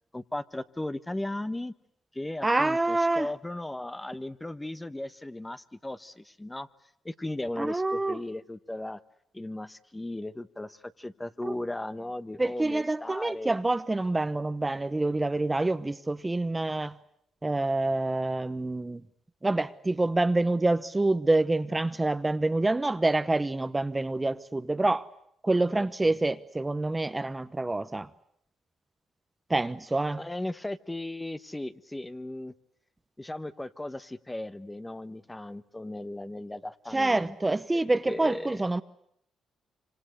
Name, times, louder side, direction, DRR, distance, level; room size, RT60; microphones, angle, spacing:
voice 1, 0.1-1.7 2.1-6.7 7.0-9.0 9.3-13.6 25.7-26.2 30.2-32.5 33.2-38.6, left 1 dB, 15° left, 1.1 m, -37 dB
voice 2, 2.4-3.3 7.6-8.2 11.4-11.6 12.4-17.0 17.4-19.0 19.4-25.1 25.4-28.1 29.5-30.2 36.9-38.8, right 2 dB, 20° right, 1.0 m, -27 dB
26.0 x 25.5 x 8.0 m
supercardioid pair, 70°, 0 cm